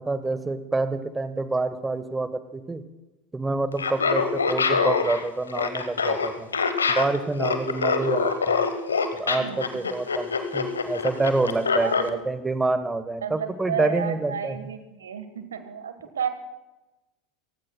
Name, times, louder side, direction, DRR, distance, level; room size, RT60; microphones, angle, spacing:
voice 1, 0.0-2.8 3.3-6.5 6.9-8.6 9.2-14.6, right 3 dB, 15° right, 11 dB, 1.2 m, -27 dB
Laughter, 3.7-12.1, left 5 dB, 85° left, 1.1 m, -25 dB
voice 2, 11.8-12.2 13.2-16.3, right 7 dB, 80° right, 10 dB, 1.3 m, -32 dB
28.5 x 15.5 x 2.2 m, 1.1 s
figure-of-eight pair, 80°, 0 cm